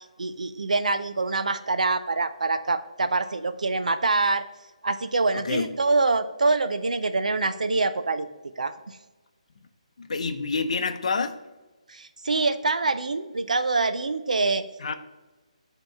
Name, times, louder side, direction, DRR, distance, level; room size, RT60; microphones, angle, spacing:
voice 1, 0.2-4.5 4.8-8.3 8.6-9.0 11.9-14.6, right 3 dB, 85° right, 10 dB, 0.5 m, -25 dB
voice 2, 5.3-5.7 10.0-11.4 14.8-14.9, left 4 dB, 65° left, 9 dB, 0.6 m, -28 dB
7.6 x 3.0 x 5.7 m, 1.2 s
hypercardioid pair, 155°, 4 cm